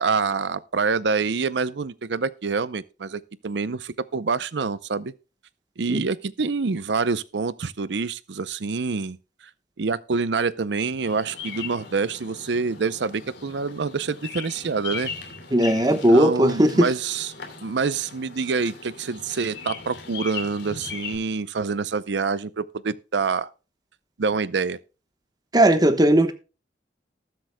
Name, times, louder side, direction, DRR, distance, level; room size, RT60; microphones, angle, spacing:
voice 1, 0.0-5.1 5.8-9.2 9.8-15.1 15.9-17.3 17.6-23.5 24.2-24.8, right 4 dB, 75° right, 0.6 m, -26 dB
Bird vocalization bird call bird song, 11.0-21.1, left 5 dB, 85° left, 2.8 m, -39 dB
voice 2, 15.5-16.9 25.5-26.3, right 1 dB, 20° right, 1.1 m, -17 dB
19.5 x 7.8 x 2.2 m
head